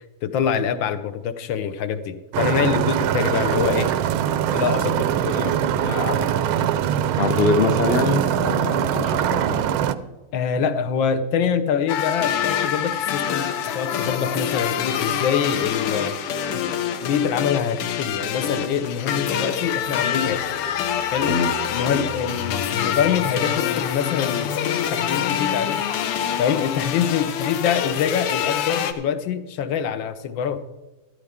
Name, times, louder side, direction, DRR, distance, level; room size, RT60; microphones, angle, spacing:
voice 1, 0.2-3.9 4.5-6.3 6.6-6.7 7.0-7.1 10.3-16.2 16.6-16.8 17.0-20.4 21.1-21.3 21.7-25.8 26.4-30.6, left 7 dB, 70° left, 11 dB, 1.4 m, -25 dB
sound 1, 2.3-9.9, right 10 dB, 80° right, 1.4 m, -22 dB
voice 2, 7.2-9.6 21.3-21.5 21.9-22.0, left 4 dB, 50° left, 8 dB, 0.7 m, -24 dB
sound 2, 11.9-28.9, left 9 dB, 90° left, 1.8 m, -26 dB
13.5 x 12.5 x 3.6 m, 1.1 s
omnidirectional pair, 2.4 m